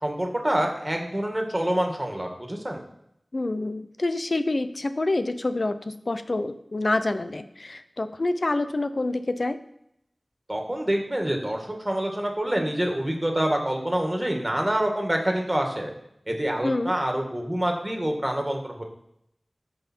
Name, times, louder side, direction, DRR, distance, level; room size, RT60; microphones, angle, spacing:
voice 1, 0.0-2.8 10.5-15.9 16.3-18.8, right 1 dB, 20° right, 2 dB, 2.0 m, -26 dB
voice 2, 3.3-9.6 16.6-16.9, left 2 dB, 60° left, 10 dB, 0.7 m, -27 dB
14.5 x 5.6 x 4.6 m, 0.77 s
wide cardioid pair, 55°, 0 cm